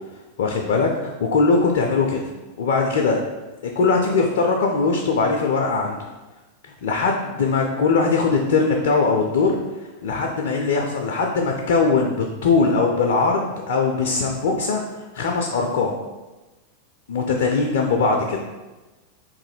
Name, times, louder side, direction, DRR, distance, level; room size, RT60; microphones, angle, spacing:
voice 1, 0.4-2.2 2.6-3.2 3.8-6.1 6.8-9.6 10.0-14.8 15.1-16.0 17.1-18.4, left 4 dB, 60° left, 2 dB, 0.4 m, -20 dB
3.0 x 2.6 x 4.0 m, 1.1 s
figure-of-eight pair, 90°, 0 cm